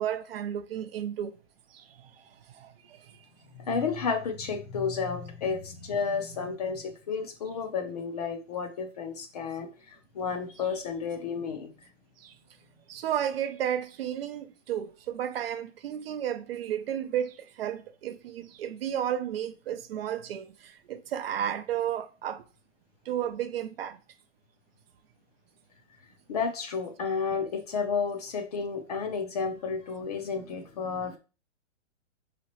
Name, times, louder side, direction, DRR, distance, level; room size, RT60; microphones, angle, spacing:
voice 1, 0.0-1.4 1.7-3.2 12.2-12.4 12.9-22.4 23.1-24.0, right 10 dB, 55° right, 0.4 m, -33 dB
voice 2, 3.6-11.7 26.3-31.2, left 5 dB, 35° left, 0.5 m, -32 dB
4.9 x 2.9 x 2.9 m
hypercardioid pair, 160°, 37 cm